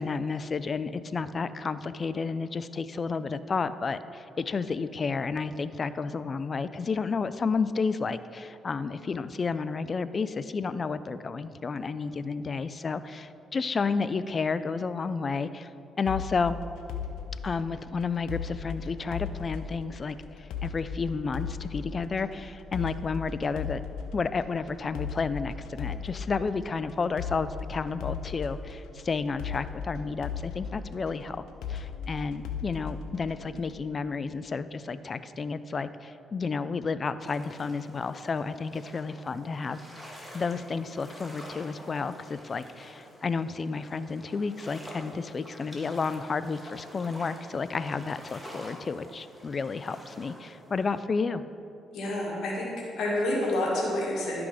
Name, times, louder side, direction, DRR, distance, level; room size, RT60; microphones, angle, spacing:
voice 1, 0.0-15.7 16.0-16.6 17.4-23.8 24.1-31.4 31.7-51.4, left 4 dB, 40° left, 13 dB, 0.4 m, -31 dB
sound 1, 16.1-33.8, left 6 dB, 90° left, 0.7 m, -38 dB
Lake in Almere, 37.2-51.0, equal, ahead, 1.8 m, -48 dB
voice 2, 51.9-54.4, left 1 dB, 75° left, -4 dB, 2.0 m, -29 dB
11.5 x 6.0 x 4.9 m, 2.8 s
cardioid pair, 90°, 0 cm